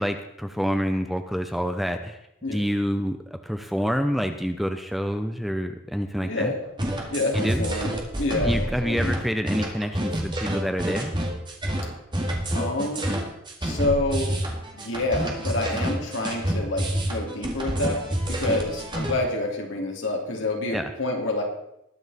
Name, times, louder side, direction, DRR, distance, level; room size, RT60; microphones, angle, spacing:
voice 1, 0.0-2.2 2.5-6.5 7.3-7.7 8.4-11.1 20.7-20.9, equal, ahead, 7 dB, 0.5 m, -27 dB
voice 2, 6.2-6.6 7.1-9.2 12.5-13.1 13.6-14.4 14.7-18.0 18.3-21.4, left 2 dB, 65° left, 1 dB, 2.7 m, -28 dB
sound 1, 6.8-19.1, right 1 dB, 25° right, 1.9 m, -28 dB
20.5 x 7.1 x 4.1 m, 0.83 s
head